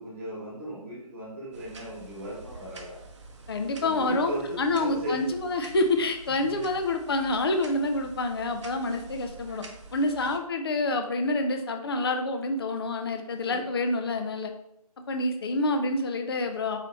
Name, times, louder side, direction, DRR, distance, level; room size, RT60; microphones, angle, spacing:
voice 1, 0.0-3.0 3.8-5.2 6.3-6.7 13.5-13.7, equal, 20° right, -6 dB, 1.2 m, -36 dB
sound 1, 1.5-10.4, right 3 dB, 50° right, 0.6 m, -47 dB
voice 2, 3.5-4.3 4.6-9.6 9.9-14.5 15.1-16.8, left 2 dB, 40° left, 5 dB, 0.4 m, -27 dB
4.7 x 2.8 x 3.0 m, 0.78 s
figure-of-eight pair, 145°, 19 cm